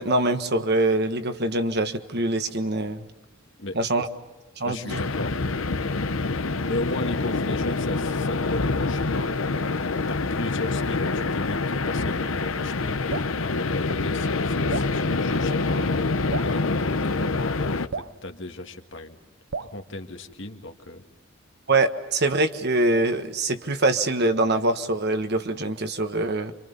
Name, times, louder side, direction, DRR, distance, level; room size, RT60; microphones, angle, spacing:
voice 1, 0.0-3.1 3.7-4.1 4.6-5.0 21.7-26.5, right 2 dB, 55° right, 8 dB, 1.5 m, -24 dB
voice 2, 4.6-5.8 6.7-9.5 9.8-16.0 16.4-19.2 19.6-21.0, left 2 dB, 65° left, 5 dB, 2.0 m, -36 dB
sound 1, 4.9-17.9, left 3 dB, 80° left, 1.0 m, -26 dB
Drip, 13.1-13.4 14.7-15.0 16.3-16.6 17.9-18.2 19.5-19.8, right 5 dB, 70° right, 0.8 m, -32 dB
29.5 x 26.0 x 5.5 m, 1.2 s
head